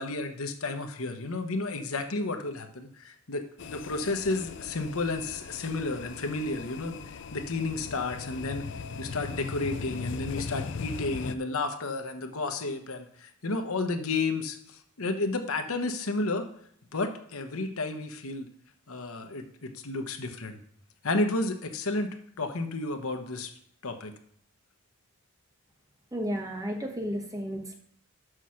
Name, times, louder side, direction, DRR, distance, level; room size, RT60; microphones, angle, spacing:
voice 1, 0.0-8.7 9.0-16.4 16.9-18.5 18.9-20.6 21.0-23.5 23.8-24.1, left 2 dB, 80° left, 6 dB, 1.1 m, -32 dB
sound 1, 3.6-11.4, left 5 dB, 55° left, 0.4 m, -39 dB
voice 2, 26.1-27.7, equal, 15° right, 2 dB, 1.2 m, -33 dB
6.2 x 5.8 x 6.3 m, 0.65 s
head